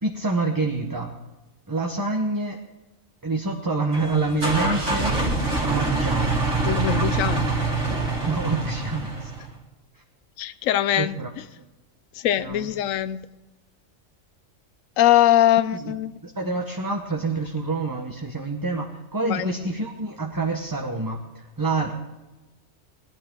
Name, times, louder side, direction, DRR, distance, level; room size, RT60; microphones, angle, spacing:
voice 1, 0.0-1.2 1.7-2.6 3.2-5.2 5.6-6.7 8.1-9.3 9.9-10.0 11.0-11.3 12.4-12.7 15.8-15.9 16.2-21.9, right 3 dB, 15° right, 0.9 m, -27 dB
sound 1, 3.9-9.5, right 3 dB, 65° right, 2.7 m, -25 dB
voice 2, 6.6-7.5 10.4-11.2 12.1-13.2 15.0-16.1 19.2-19.5, left 12 dB, 85° left, 1.0 m, -21 dB
18.5 x 12.0 x 3.8 m
omnidirectional pair, 1.3 m